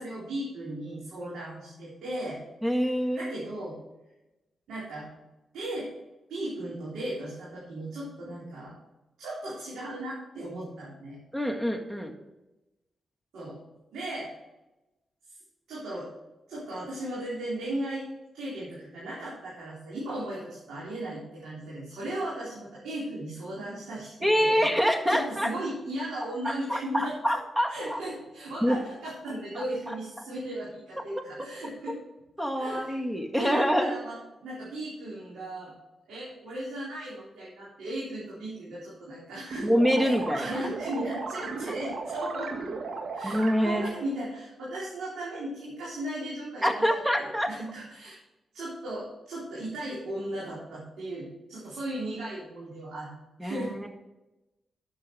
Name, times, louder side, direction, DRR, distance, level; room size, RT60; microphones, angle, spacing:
voice 1, 0.0-2.4 3.2-3.8 4.7-5.1 5.5-5.9 6.3-8.7 9.2-11.2 13.3-13.6 13.9-14.3 15.7-16.1 16.5-18.1 18.3-24.1 24.4-24.6 25.1-27.1 27.7-32.0 32.6-32.9 33.4-35.7 36.1-39.7 40.0-42.5 43.1-46.8 47.2-48.2 48.5-53.1 53.4-53.7, right 1 dB, 80° right, -8 dB, 3.9 m, -36 dB
voice 2, 2.6-3.3 11.3-12.1 24.2-25.5 26.4-28.0 28.6-28.8 29.5-29.9 32.4-34.0 39.6-40.6 43.2-44.0 46.6-47.5 53.4-53.9, equal, 10° right, 4 dB, 1.8 m, -26 dB
sound 1, 39.5-43.9, right 4 dB, 65° right, 1.5 m, -36 dB
11.0 x 7.8 x 4.7 m, 1.0 s
supercardioid pair, 45°, 0 cm